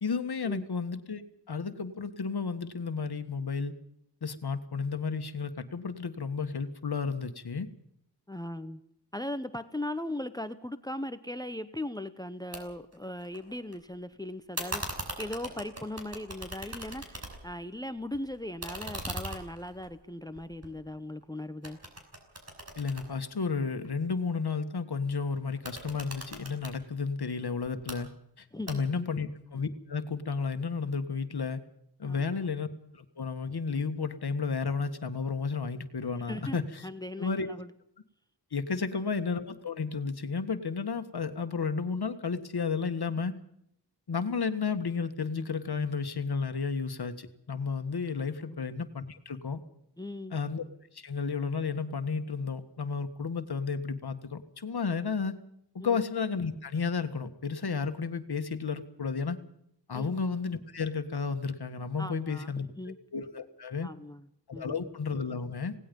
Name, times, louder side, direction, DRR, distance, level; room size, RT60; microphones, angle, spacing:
voice 1, 0.0-1.2 1.5-3.7 4.2-7.7 22.8-28.1 28.4-31.6 32.0-32.7 32.9-36.9 37.2-37.5 38.5-43.4 44.1-49.6 50.3-50.6 50.9-55.4 55.8-59.4 59.9-62.7 63.1-63.9 64.5-65.8, left 5 dB, 65° left, 8 dB, 1.8 m, -32 dB
voice 2, 8.3-8.8 9.1-21.8 28.5-29.2 32.1-32.4 36.2-37.7 48.4-48.6 50.0-50.4 55.8-56.0 59.9-60.2 62.0-63.0 63.8-64.9, left 1 dB, 10° left, 12 dB, 0.9 m, -39 dB
sound 1, 12.5-12.6 12.9-13.7 14.5-17.6 18.0-21.2 21.6-23.9 25.5-26.8 27.6-28.0 28.7-29.1, right 1 dB, 35° right, 5.8 m, -40 dB
27.0 x 18.5 x 5.4 m, 0.72 s
wide cardioid pair, 90°, 41 cm